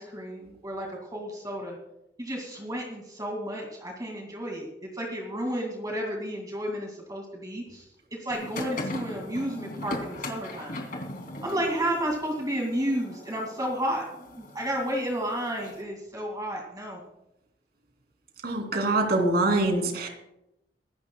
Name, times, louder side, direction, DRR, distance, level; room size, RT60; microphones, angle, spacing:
voice 1, 0.0-1.8 2.2-10.8 11.4-14.0 14.4-17.0, equal, 20° right, 0 dB, 2.3 m, -32 dB
sound 1, 8.3-15.8, left 1 dB, 50° left, 2.8 m, -39 dB
voice 2, 18.4-20.1, right 2 dB, 60° right, 3 dB, 3.0 m, -24 dB
24.0 x 13.0 x 2.3 m, 0.86 s
head